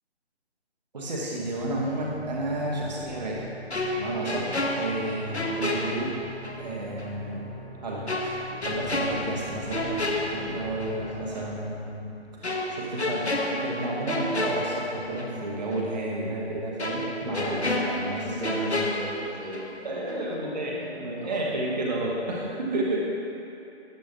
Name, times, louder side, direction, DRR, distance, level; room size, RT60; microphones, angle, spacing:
voice 1, 0.9-3.5 3.9-6.1 6.6-7.5 7.8-12.1 12.4-18.8 19.8-23.0, right 1 dB, 40° right, -4 dB, 1.3 m, -31 dB
sound 1, 1.5-12.9, right 2 dB, 5° right, 1.0 m, -45 dB
sound 2, 3.7-6.6 7.0-7.1 8.1-11.0 11.3-11.5 12.4-15.4 15.7-15.8 16.8-19.8 20.1-20.3, left 1 dB, 75° left, 1.2 m, -31 dB
voice 2, 4.1-4.6 6.8-7.0 10.3-10.6 17.2-21.5 22.4-22.7, equal, 85° right, -3 dB, 1.9 m, -38 dB
sound 3, 8.6-12.5, left 1 dB, 60° left, 2.0 m, -44 dB
12.0 x 9.0 x 2.9 m, 2.8 s
figure-of-eight pair, 150°, 33 cm